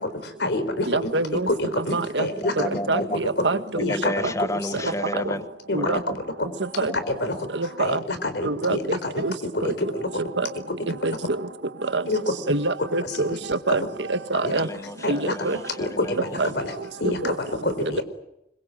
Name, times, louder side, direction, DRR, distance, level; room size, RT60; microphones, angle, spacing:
voice 1, 0.0-1.1 1.5-2.8 3.1-3.4 3.8-4.3 4.7-4.8 5.7-6.1 7.1-9.3 9.5-10.1 10.9-11.0 12.1-12.2 13.0-13.4 13.7-13.9 14.4-14.6 15.0-15.3 15.8-18.0, left 2 dB, 70° left, 10 dB, 4.3 m, -28 dB
voice 2, 0.9-1.5 1.9-2.3 2.9-3.8 5.7-6.0 6.8-6.9 7.5-8.0 8.4-8.8 9.2-9.3 9.6-9.7 10.4-10.5 11.0-11.1 11.9-12.0 12.5-13.8 14.1-14.7 15.1-15.6 16.4-16.5 17.2-17.3, right 2 dB, 85° right, 10 dB, 1.7 m, -25 dB
voice 3, 2.4-3.2 3.7-5.4 5.7-6.5 6.9-7.4 14.5-16.3, left 1 dB, 20° left, 11 dB, 1.1 m, -32 dB
25.5 x 23.0 x 9.0 m, 0.85 s
head